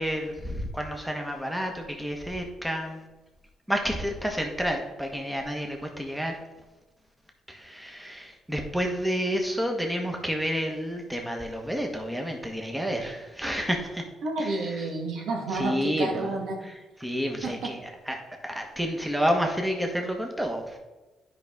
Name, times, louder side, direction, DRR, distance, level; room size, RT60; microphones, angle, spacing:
voice 1, 0.0-3.0 3.7-6.4 7.5-14.0 14.4-14.5 15.5-16.3 16.6-16.7 17.0-17.8 18.1-18.2 18.4-20.8, equal, 5° right, 2 dB, 1.3 m, -30 dB
voice 2, 14.2-16.6 17.4-17.7, right 3 dB, 75° right, 1 dB, 1.5 m, -30 dB
9.9 x 5.3 x 3.7 m, 1.1 s
cardioid pair, 90°, 0 cm